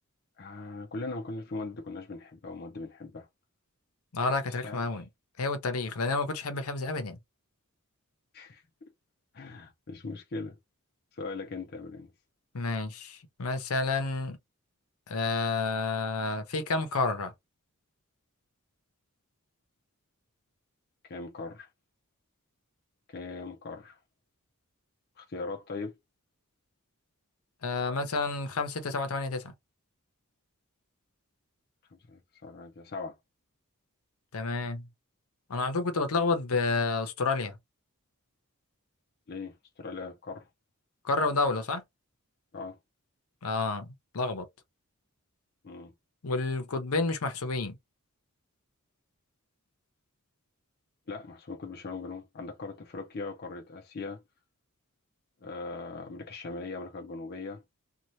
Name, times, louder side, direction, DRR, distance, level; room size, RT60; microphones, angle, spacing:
voice 1, 0.4-3.3 4.6-5.0 8.3-8.9 9.3-10.6 11.1-12.1 21.0-21.7 23.1-24.0 25.2-26.0 32.1-33.2 39.3-40.5 42.5-42.8 45.6-45.9 51.1-54.2 55.4-57.6, left 3 dB, 45° left, 0.5 m, -40 dB
voice 2, 4.1-5.1 5.4-7.2 12.5-14.4 15.1-17.3 27.6-29.5 34.3-34.9 35.5-37.6 41.0-41.8 43.4-44.5 46.2-47.8, left 3 dB, 80° left, 0.7 m, -30 dB
2.7 x 2.3 x 3.1 m
head